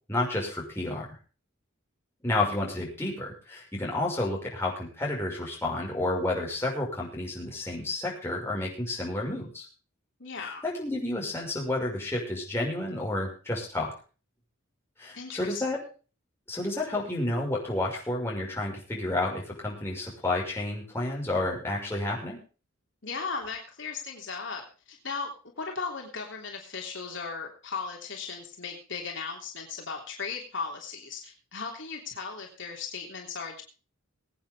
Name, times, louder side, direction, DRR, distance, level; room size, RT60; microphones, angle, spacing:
voice 1, 0.1-1.1 2.2-9.7 10.4-13.9 15.0-15.8 16.5-22.4, left 2 dB, 10° left, -3 dB, 6.0 m, -30 dB
voice 2, 10.2-10.6 15.1-15.5 23.0-33.6, left 5 dB, 60° left, 0 dB, 3.3 m, -37 dB
23.0 x 9.0 x 3.6 m, 0.35 s
head